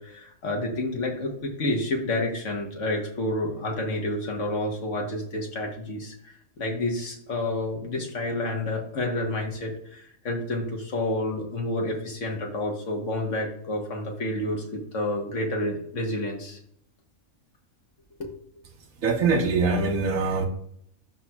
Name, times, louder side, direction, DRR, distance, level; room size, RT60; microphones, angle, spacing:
voice 1, 0.0-16.6 18.2-18.4, left 1 dB, 60° left, 1 dB, 1.7 m, -29 dB
voice 2, 19.0-20.5, right 4 dB, 75° right, 3 dB, 1.5 m, -23 dB
12.5 x 4.4 x 2.4 m, 0.67 s
omnidirectional pair, 1.4 m